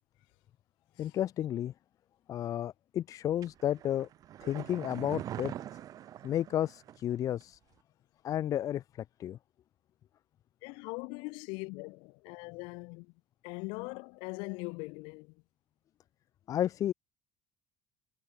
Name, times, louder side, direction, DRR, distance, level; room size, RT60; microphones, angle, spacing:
voice 1, 1.0-1.7 2.3-4.1 4.4-5.5 6.2-7.6 8.2-8.8 9.2-9.4 16.5-16.9, left 11 dB, 45° left, 0.7 m, -32 dB
sound 1, 3.4-7.1 7.4-7.5, right 11 dB, 45° right, 1.2 m, -43 dB
voice 2, 10.6-13.1 13.4-15.4, left 30 dB, 75° left, 3.2 m, -41 dB
supercardioid pair, 115°, 8 cm